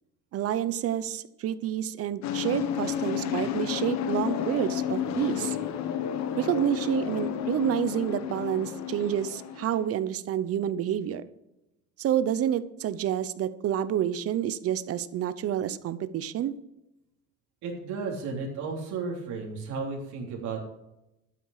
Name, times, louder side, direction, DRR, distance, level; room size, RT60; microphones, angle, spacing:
voice 1, 0.3-5.6 6.4-11.2 12.0-16.5, right 10 dB, 50° right, 14 dB, 0.9 m, -28 dB
sound 1, 2.2-10.0, left 9 dB, 60° left, 1.2 m, -31 dB
voice 2, 17.6-20.6, right 4 dB, 70° right, -2 dB, 3.4 m, -33 dB
12.5 x 9.4 x 5.0 m, 0.89 s
cardioid pair, 155°, 30 cm